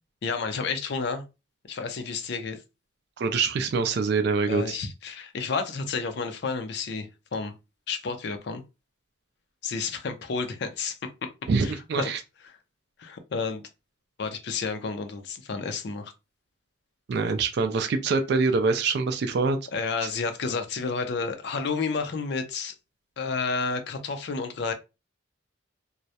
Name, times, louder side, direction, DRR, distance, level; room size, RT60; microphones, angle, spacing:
voice 1, 0.2-1.3 1.7-2.6 4.5-7.5 7.9-8.6 9.6-11.0 11.6-12.1 13.0-13.6 14.2-16.1 19.7-22.7 23.2-24.7, left 4 dB, 60° left, 0.4 m, -31 dB
voice 2, 3.2-4.8 11.5-12.2 17.1-19.6, right 4 dB, 55° right, 0.3 m, -25 dB
2.2 x 2.0 x 2.7 m
head